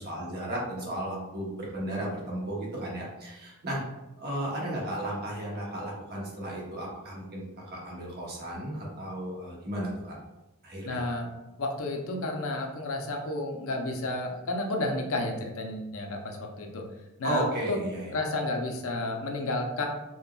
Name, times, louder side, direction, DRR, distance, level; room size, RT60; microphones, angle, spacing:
voice 1, 0.0-3.8 4.2-10.1 10.6-11.0 17.2-18.1, right 1 dB, 45° right, -3 dB, 0.8 m, -34 dB
voice 2, 10.8-11.3 11.6-16.8 17.2-17.8 18.1-19.9, left 2 dB, 65° left, 2 dB, 0.5 m, -31 dB
3.7 x 2.2 x 2.2 m, 0.98 s
head